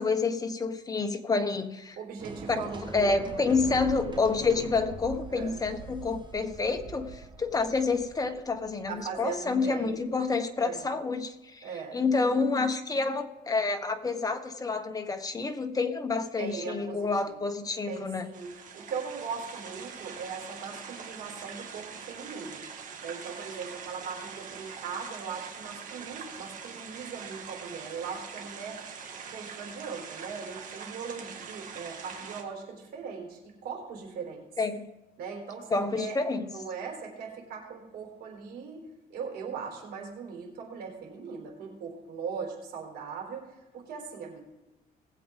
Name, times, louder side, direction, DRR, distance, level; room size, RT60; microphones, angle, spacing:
voice 1, 0.0-2.0 2.5-2.6 2.9-18.3 34.6-34.9 35.7-36.5, left 4 dB, 20° left, 6 dB, 1.3 m, -28 dB
voice 2, 2.0-3.5 5.3-5.6 8.9-10.0 10.6-10.9 11.6-12.0 16.4-17.4 17.9-22.6 23.0-28.8 29.3-34.4 35.2-36.2 36.4-38.8 39.1-43.5 43.7-44.4, right 5 dB, 70° right, 1 dB, 4.2 m, -39 dB
sound 1, 2.2-10.2, right 4 dB, 25° right, 1.3 m, -43 dB
sound 2, 18.3-32.4, right 6 dB, 50° right, 2.1 m, -43 dB
19.5 x 7.9 x 3.8 m, 1.0 s
cardioid pair, 110°, 17 cm